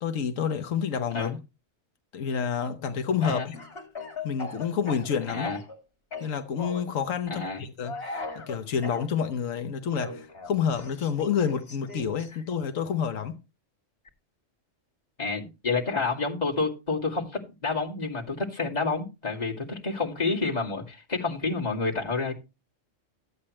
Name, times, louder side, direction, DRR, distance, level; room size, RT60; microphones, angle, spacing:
voice 1, 0.0-1.4 2.1-3.5 4.2-5.6 6.2-13.4, left 7 dB, 85° left, 1.3 m, -29 dB
Speech / Cough, 3.5-5.8 6.1-6.9 7.8-9.0 10.0-12.3, left 3 dB, 50° left, 2.6 m, -39 dB
voice 2, 5.3-5.6 7.3-7.6 15.2-22.3, left 4 dB, 30° left, 2.5 m, -29 dB
13.5 x 8.6 x 3.1 m
omnidirectional pair, 1.3 m